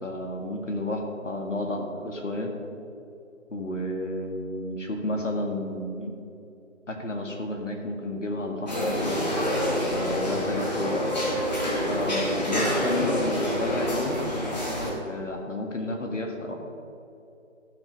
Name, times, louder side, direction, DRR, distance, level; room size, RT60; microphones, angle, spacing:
voice 1, 0.0-2.5 3.5-6.1 6.9-9.2 9.9-11.0 11.9-14.2 14.5-14.7 15.1-16.5, left 1 dB, 65° left, 2 dB, 1.9 m, -31 dB
sound 1, 8.7-14.9, equal, 30° left, 2.3 m, -27 dB
14.5 x 6.5 x 5.4 m, 2.7 s
figure-of-eight pair, 165°, 40 cm